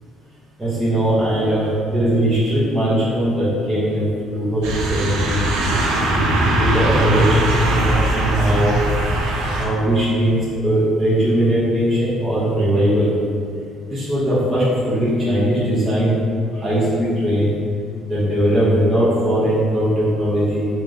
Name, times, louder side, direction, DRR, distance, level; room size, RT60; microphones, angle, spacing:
voice 1, 0.6-4.0 4.3-5.4 6.6-7.5 7.9-8.8 9.5-13.1 13.9-16.1 16.5-17.5 18.1-20.7, right 1 dB, 10° right, -11 dB, 0.9 m, -19 dB
sound 1, 4.6-9.7, right 1 dB, 90° right, 0.5 m, -19 dB
3.7 x 2.5 x 3.3 m, 2.3 s
cardioid pair, 135°, 0 cm